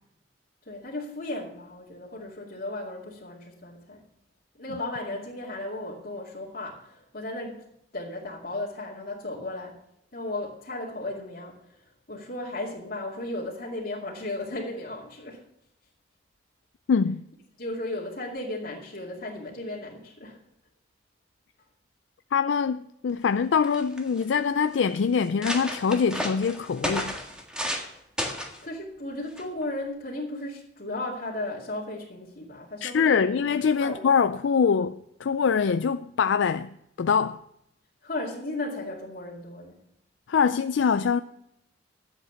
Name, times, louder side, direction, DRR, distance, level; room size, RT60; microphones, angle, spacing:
voice 1, 0.7-4.0 4.6-7.7 7.9-9.8 10.1-15.4 17.6-20.4 28.6-34.2 38.0-39.8, left 2 dB, 55° left, 2.3 m, -35 dB
voice 2, 16.9-17.2 22.3-27.1 32.8-36.7 37.0-37.4 40.3-41.2, left 6 dB, 90° left, 0.4 m, -24 dB
sound 1, 23.3-23.4 23.6-24.2 24.8-24.9 25.2-27.9 28.2-28.6 29.4-29.6, equal, 5° right, 1.7 m, -32 dB
11.5 x 8.0 x 7.0 m
head